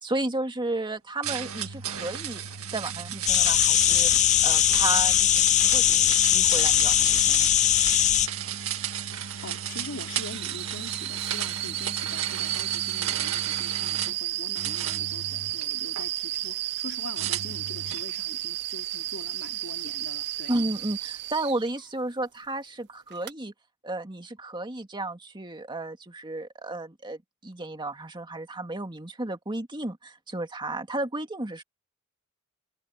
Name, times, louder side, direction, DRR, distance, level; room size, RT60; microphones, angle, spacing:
voice 1, 0.0-4.1 4.4-7.5 20.5-23.5 23.8-31.6, right 2 dB, 20° right, 2.1 m, -33 dB
sound 1, 1.2-14.2 14.6-16.1 17.2-18.1, right 9 dB, 70° right, 1.9 m, -34 dB
sound 2, 3.3-8.3, left 11 dB, 35° left, 0.5 m, -20 dB
voice 2, 9.1-20.5, left 3 dB, 65° left, 2.5 m, -43 dB
sound 3, 10.1-21.7 23.1-23.3, right 15 dB, 50° right, 0.4 m, -32 dB
head